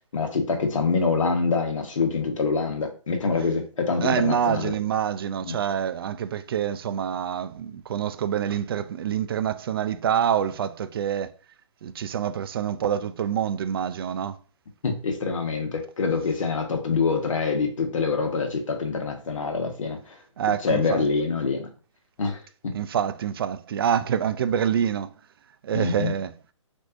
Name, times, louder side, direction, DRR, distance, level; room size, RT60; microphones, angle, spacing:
voice 1, 0.1-4.7 5.4-5.6 14.8-20.2 20.6-21.7 22.2-22.4 22.6-22.7 25.7-26.1, left 4 dB, 80° left, 1.3 m, -25 dB
voice 2, 4.0-11.3 11.8-14.4 20.4-21.0 22.7-25.1 25.6-26.3, right 9 dB, 45° right, 0.4 m, -26 dB
6.1 x 2.7 x 2.5 m
hypercardioid pair, 155°, 17 cm